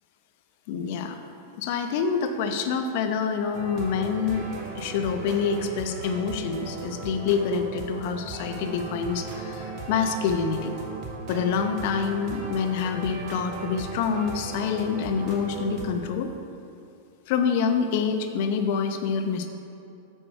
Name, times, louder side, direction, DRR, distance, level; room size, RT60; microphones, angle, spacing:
voice 1, 0.7-1.2 1.6-4.5 4.8-10.7 11.3-16.3 17.3-19.5, left 6 dB, 55° left, 6 dB, 0.8 m, -26 dB
sound 1, 3.5-15.9, right 3 dB, 45° right, 1.5 m, -37 dB
8.9 x 6.4 x 4.5 m, 2.6 s
hypercardioid pair, 100°, 0 cm